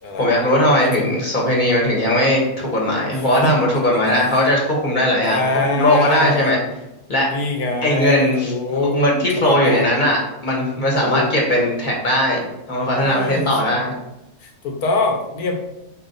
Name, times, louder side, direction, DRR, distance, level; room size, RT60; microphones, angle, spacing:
voice 1, 0.2-5.4 5.7-6.6 7.1-7.3 7.8-8.5 8.9-12.4 12.7-13.9, left 1 dB, 35° left, -2 dB, 1.1 m, -18 dB
voice 2, 0.8-1.1 3.1-3.6 4.0-4.4 5.2-6.6 7.3-9.0 9.4-9.9 11.0-11.3 12.9-13.7 14.4-15.6, left 2 dB, 70° left, 2 dB, 1.3 m, -23 dB
4.4 x 2.8 x 3.9 m, 0.93 s
omnidirectional pair, 1.7 m